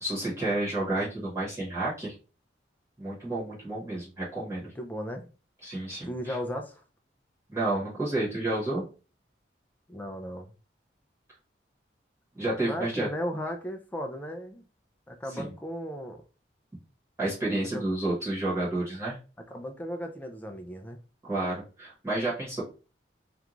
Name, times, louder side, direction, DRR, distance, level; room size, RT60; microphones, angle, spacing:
voice 1, 0.0-2.1 3.0-4.6 5.6-6.4 7.5-8.8 12.4-13.1 15.4-15.5 17.2-19.2 21.3-22.6, right 2 dB, 15° right, 1.0 m, -30 dB
voice 2, 4.6-5.3 6.0-6.8 9.9-10.5 12.6-14.6 15.1-16.2 17.6-17.8 19.5-21.0, equal, 10° left, 0.3 m, -36 dB
2.5 x 2.3 x 3.0 m
head